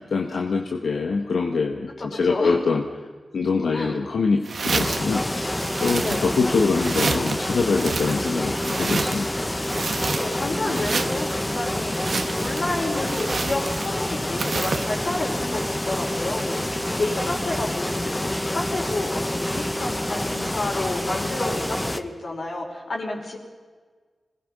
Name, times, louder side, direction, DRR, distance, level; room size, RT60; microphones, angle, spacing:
voice 1, 0.0-2.8 3.3-9.4, left 4 dB, 85° left, 2 dB, 1.5 m, -24 dB
voice 2, 2.0-2.6 3.7-4.1 6.0-6.2 10.0-23.4, left 2 dB, 60° left, 0 dB, 5.3 m, -30 dB
sound 1, 4.4-5.1 5.6-6.5 6.8-7.4 7.8-9.3 9.6-10.4 10.7-11.4 11.9-12.7 13.0-14.0 14.4-15.0, right 4 dB, 65° right, 1.2 m, -29 dB
sound 2, 4.8-22.0, left 1 dB, 15° left, 1.1 m, -27 dB
26.0 x 20.0 x 5.5 m, 1.5 s
wide cardioid pair, 95°, 0 cm